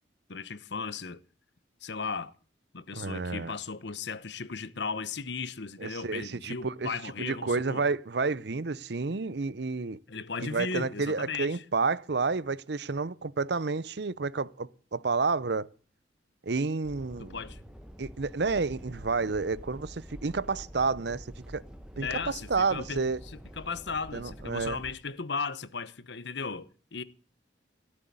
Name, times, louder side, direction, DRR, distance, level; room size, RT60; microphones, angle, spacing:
voice 1, 0.3-1.2 1.8-2.3 2.7-7.9 10.1-11.6 17.2-17.6 22.0-27.0, left 5 dB, 65° left, 1.0 m, -36 dB
voice 2, 3.0-3.5 5.8-6.9 7.2-10.0 10.4-15.7 16.4-17.4 18.0-21.6 22.0-23.2 24.1-24.8, right 4 dB, 60° right, 0.7 m, -30 dB
sound 1, 16.8-24.9, equal, 5° right, 1.3 m, -47 dB
17.5 x 7.7 x 9.4 m
head